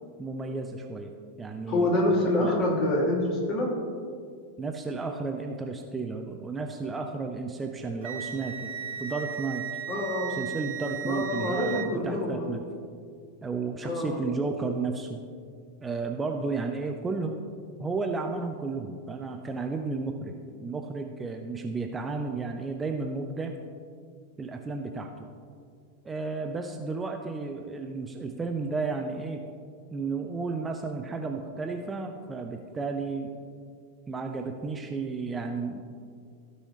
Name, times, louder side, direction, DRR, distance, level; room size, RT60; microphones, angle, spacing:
voice 1, 0.2-1.1 1.4-1.9 2.4-2.5 4.6-8.7 9.0-9.7 10.4-12.6 13.4-15.2 15.8-17.4 17.8-20.3 20.6-23.5 24.4-25.3 26.0-29.4 29.9-33.3 34.1-36.0, right 4 dB, 15° right, 4 dB, 0.6 m, -33 dB
voice 2, 1.7-3.8 9.9-10.4 11.1-12.5 13.8-14.2, left 1 dB, 40° left, -3 dB, 2.4 m, -26 dB
Wind instrument woodwind instrument, 8.0-11.9, right 9 dB, 60° right, 0.8 m, -36 dB
15.0 x 5.5 x 3.2 m, 2.2 s
figure-of-eight pair, 90°, 0 cm